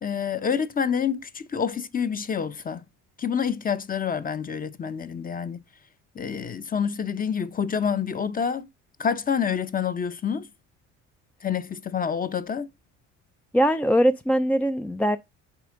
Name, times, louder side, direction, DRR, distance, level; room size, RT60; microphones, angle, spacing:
voice 1, 0.0-2.8 3.2-5.6 6.2-8.7 9.0-10.5 11.4-12.7, left 7 dB, 25° left, 0.7 m, -27 dB
voice 2, 13.5-15.2, equal, 5° left, 0.4 m, -21 dB
6.8 x 4.3 x 3.8 m
supercardioid pair, 85°, 33 cm